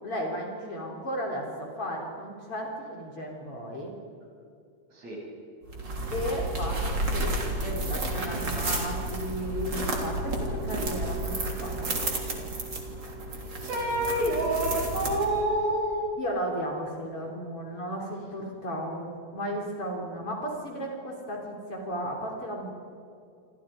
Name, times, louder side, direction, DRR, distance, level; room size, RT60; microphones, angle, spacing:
voice 1, 0.0-3.9 6.1-12.1 16.2-22.7, equal, 45° left, 0 dB, 4.2 m, -34 dB
sound 1, 5.7-15.6, right 2 dB, 35° right, 3.8 m, -31 dB
voice 2, 13.6-16.1, right 1 dB, 55° right, -3 dB, 9.1 m, -27 dB
29.0 x 26.5 x 5.1 m, 2.5 s
omnidirectional pair, 3.8 m